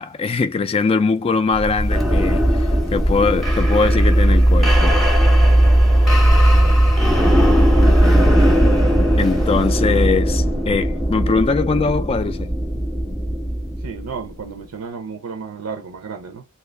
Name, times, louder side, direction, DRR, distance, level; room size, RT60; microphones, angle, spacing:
voice 1, 0.0-5.0 9.2-12.5, left 4 dB, 25° left, 0.3 m, -21 dB
sound 1, 1.5-14.3, equal, ahead, 0.8 m, -16 dB
voice 2, 6.3-6.8 7.1-8.2 13.8-16.4, right 5 dB, 75° right, 0.6 m, -34 dB
2.8 x 2.4 x 3.3 m
head